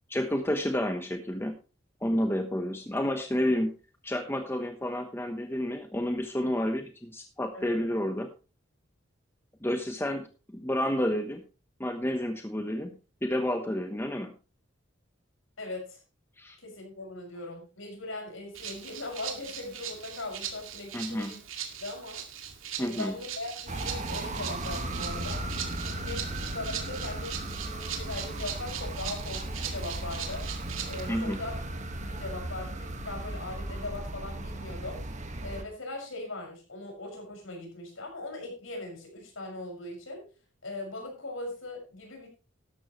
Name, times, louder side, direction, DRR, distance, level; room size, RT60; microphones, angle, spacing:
voice 1, 0.1-1.6 2.0-3.8 4.0-8.3 9.6-10.3 10.5-11.4 11.8-14.3 16.4-16.6 20.9-21.3 22.8-23.1 31.1-31.4, left 1 dB, 10° left, 6 dB, 1.0 m, -30 dB
voice 2, 15.6-16.0 16.6-21.4 21.8-22.2 22.8-25.4 25.8-30.5 30.9-31.6 31.9-35.0 35.4-40.3 40.6-42.3, left 2 dB, 90° left, 1 dB, 6.1 m, -40 dB
Rattle (instrument), 18.5-31.1, right 9 dB, 85° right, 2.2 m, -40 dB
sound 1, 23.7-35.6, right 1 dB, 40° right, 1.6 m, -36 dB
13.0 x 11.5 x 3.1 m, 0.32 s
head